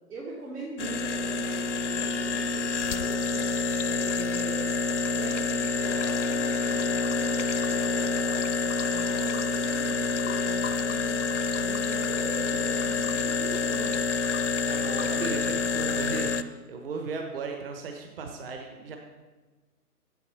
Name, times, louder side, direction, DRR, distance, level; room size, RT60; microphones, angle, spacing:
voice 1, 0.1-4.7 5.1-14.0, right 2 dB, 70° right, -5 dB, 2.9 m, -42 dB
sound 1, 0.8-16.4, left 4 dB, 50° left, 0.6 m, -27 dB
voice 2, 14.7-19.0, right 4 dB, 35° right, 4 dB, 1.1 m, -36 dB
8.7 x 7.8 x 6.8 m, 1.3 s
figure-of-eight pair, 140°, 47 cm